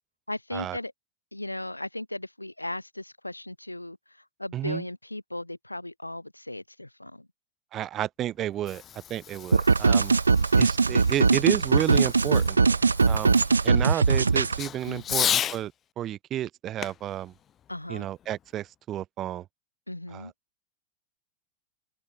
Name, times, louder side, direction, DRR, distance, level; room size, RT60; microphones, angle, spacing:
voice 1, 0.3-0.9 1.3-7.3 14.8-15.3 17.7-18.1 19.9-20.3, left 1 dB, 85° left, 2.2 m, -37 dB
voice 2, 4.5-4.8 7.7-10.2 10.6-12.8 13.0-17.3 17.9-19.4 20.1-20.3, right 12 dB, 30° right, 1.4 m, -31 dB
Fireworks, 8.4-15.6 16.8-18.4, left 10 dB, 25° left, 2.1 m, -35 dB
sound 1, 9.5-14.6, right 4 dB, 75° right, 0.4 m, -21 dB
figure-of-eight pair, 90°, 0 cm